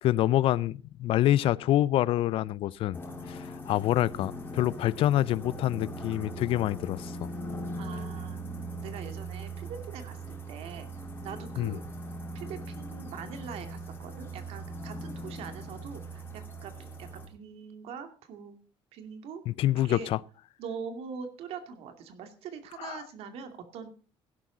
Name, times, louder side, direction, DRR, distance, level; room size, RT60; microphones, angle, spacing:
voice 1, 0.0-3.0 3.3-7.3 11.6-11.7 19.5-20.2 22.8-23.0, left 13 dB, 60° left, 0.5 m, -26 dB
sound 1, 2.9-17.3, right 1 dB, 20° left, 3.5 m, -40 dB
voice 2, 7.8-8.4 8.8-11.8 12.3-18.6 18.9-19.4 19.7-20.1 20.6-23.9, right 6 dB, 75° right, 2.4 m, -43 dB
17.0 x 11.0 x 3.9 m
cardioid pair, 150°, 10 cm